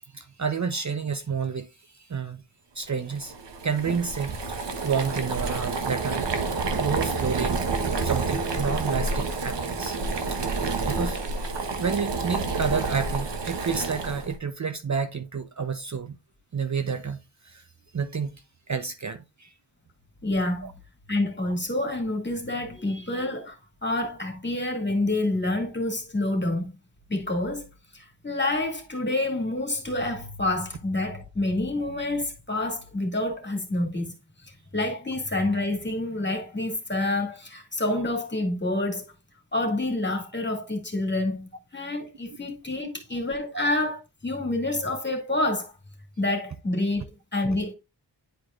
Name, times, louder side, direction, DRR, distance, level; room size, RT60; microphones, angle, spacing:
voice 1, 0.1-1.7 2.0-2.4 2.8-3.3 3.6-6.3 6.8-10.0 10.2-11.2 11.5-16.2 16.5-17.2 17.4-17.6 17.9-18.4 18.7-19.5 20.6-20.7 43.5-43.7, right 5 dB, 40° right, 0.7 m, -30 dB
Boiling, 3.1-14.4, right 3 dB, 75° right, 1.2 m, -29 dB
voice 2, 20.2-20.7 21.1-26.8 27.1-27.6 27.9-34.1 34.4-39.1 39.5-45.7 46.2-47.7, left 2 dB, 25° left, 2.3 m, -28 dB
10.0 x 4.7 x 2.4 m
wide cardioid pair, 105°, 43 cm